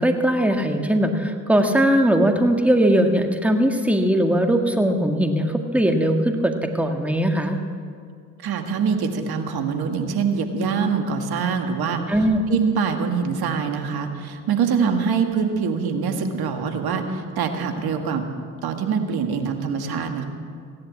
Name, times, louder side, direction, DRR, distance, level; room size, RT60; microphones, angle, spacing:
voice 1, 0.0-7.6 12.1-12.4, right 1 dB, 5° right, 4 dB, 1.8 m, -20 dB
voice 2, 8.4-12.0 12.5-18.2 18.6-20.2, right 6 dB, 65° right, 5 dB, 2.0 m, -24 dB
16.0 x 10.5 x 8.4 m, 2.2 s
supercardioid pair, 55°, 39 cm